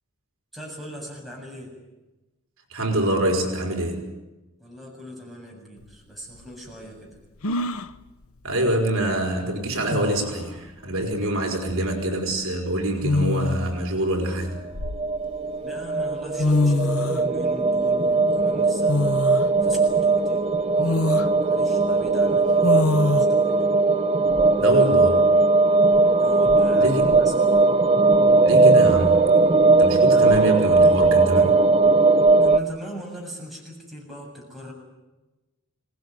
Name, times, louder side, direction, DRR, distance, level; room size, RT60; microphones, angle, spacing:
voice 1, 0.5-1.7 4.6-7.2 15.6-20.4 20.8-23.6 26.2-27.6 30.1-30.5 32.3-34.7, equal, ahead, -3 dB, 7.5 m, -40 dB
voice 2, 2.7-4.0 8.4-14.6 24.6-25.3 26.8-27.1 28.4-29.3 29.8-31.6, right 1 dB, 65° right, 2 dB, 4.6 m, -25 dB
sound 1, 5.8-5.9 7.4-7.9 9.4-9.5 9.9-10.4 11.7-11.9 13.0-13.8 14.4-15.4 16.1-16.2 16.4-17.3 18.9-19.5 20.0-20.1 20.8-21.3 22.6-23.2, left 2 dB, 80° left, 0.9 m, -24 dB
sound 2, 14.7-32.6, right 3 dB, 30° right, 0.9 m, -19 dB
24.5 x 19.0 x 9.7 m, 1.1 s
head